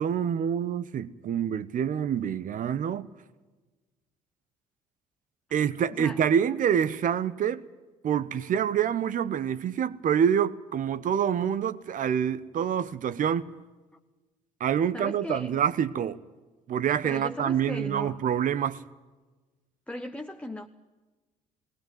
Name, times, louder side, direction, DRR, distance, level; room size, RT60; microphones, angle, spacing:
voice 1, 0.0-3.1 5.5-7.6 8.0-13.5 14.6-16.2 16.7-18.8, right 8 dB, 50° right, 1.1 m, -26 dB
voice 2, 5.9-6.3 14.9-15.6 17.0-18.2 19.9-20.7, left 1 dB, 5° left, 1.2 m, -37 dB
19.0 x 19.0 x 9.5 m
hypercardioid pair, 55°, 18 cm